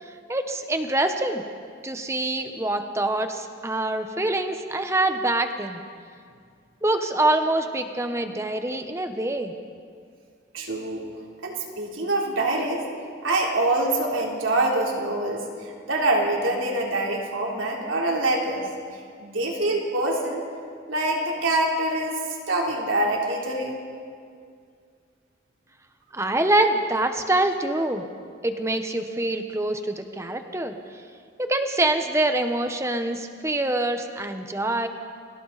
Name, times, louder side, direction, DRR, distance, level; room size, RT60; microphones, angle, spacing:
voice 1, 0.0-1.4 1.8-5.8 6.8-9.5 26.1-28.0 28.4-30.7 31.4-34.9, right 2 dB, 15° right, 6 dB, 1.2 m, -25 dB
voice 2, 10.5-11.0 11.4-12.8 13.2-18.6 19.2-20.4 20.9-22.2 22.5-23.8, right 2 dB, 90° right, -1 dB, 3.6 m, -25 dB
30.0 x 23.0 x 4.2 m, 2.2 s
head